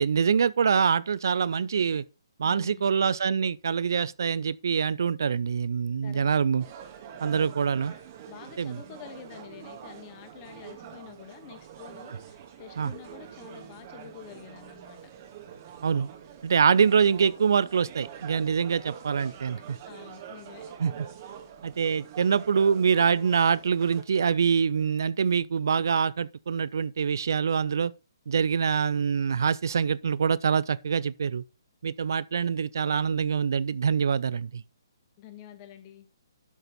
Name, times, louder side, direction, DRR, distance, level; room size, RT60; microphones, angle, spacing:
voice 1, 0.0-2.0 2.4-6.6 7.2-7.9 8.6-8.8 12.8-12.9 15.8-16.1 16.4-19.8 20.8-20.9 21.6-27.9 28.3-31.4 31.8-34.6, right 6 dB, 55° right, 0.6 m, -25 dB
voice 2, 2.4-2.9 6.0-6.2 7.2-7.5 8.3-15.0 19.3-20.8 35.2-36.1, left 9 dB, 25° left, 2.2 m, -48 dB
sound 1, 6.6-24.0, right 9 dB, 35° right, 1.9 m, -46 dB
12.0 x 6.7 x 4.1 m
figure-of-eight pair, 130°, 2 cm